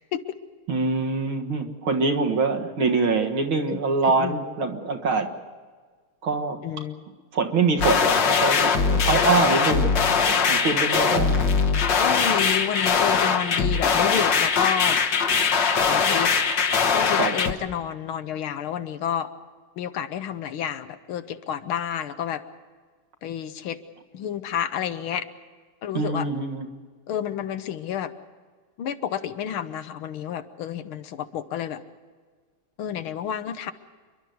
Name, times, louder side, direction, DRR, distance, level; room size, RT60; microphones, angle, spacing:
voice 1, 0.7-5.3 6.2-6.6 7.3-9.9 10.2-11.6 17.1-17.3 25.9-26.7, right 4 dB, 70° right, 3 dB, 2.4 m, -24 dB
voice 2, 4.1-4.4 6.6-7.0 12.0-15.0 15.8-16.3 16.9-19.3 19.8-22.4 23.2-23.8 24.1-25.3 25.8-26.3 27.1-28.1 28.8-31.8 32.8-33.7, left 9 dB, 75° left, 11 dB, 1.7 m, -30 dB
sound 1, 7.8-17.5, left 5 dB, 60° left, 1.8 m, -21 dB
28.5 x 12.0 x 9.4 m, 1.5 s
omnidirectional pair, 2.4 m